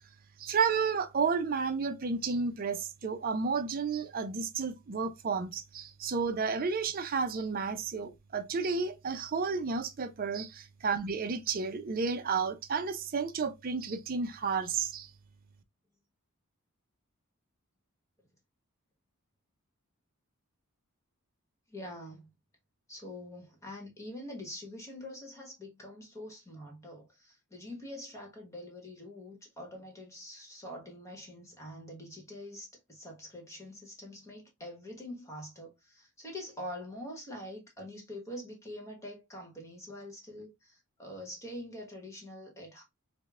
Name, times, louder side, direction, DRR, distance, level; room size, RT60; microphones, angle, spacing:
voice 1, 0.4-15.1, right 5 dB, 40° right, 0.5 m, -32 dB
voice 2, 21.7-22.3 22.9-42.8, left 1 dB, 15° left, 1.1 m, -45 dB
5.0 x 2.1 x 2.3 m
head